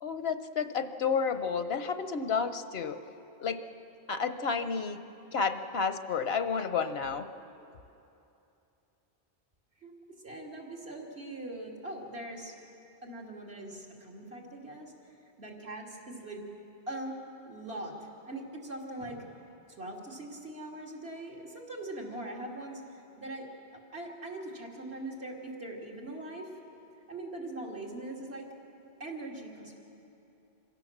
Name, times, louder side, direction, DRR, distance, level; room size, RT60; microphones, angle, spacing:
voice 1, 0.0-3.0 3.4-3.6 4.1-5.0 5.3-7.3, left 5 dB, 75° left, 10 dB, 1.1 m, -31 dB
voice 2, 10.2-12.5 13.0-14.9 15.4-16.4 16.9-17.2 17.4-19.4 19.7-23.5 23.9-26.5 27.1-28.5 29.0-29.7, right 1 dB, 75° right, -2 dB, 3.0 m, -41 dB
26.0 x 16.5 x 7.3 m, 2.8 s
omnidirectional pair, 1.0 m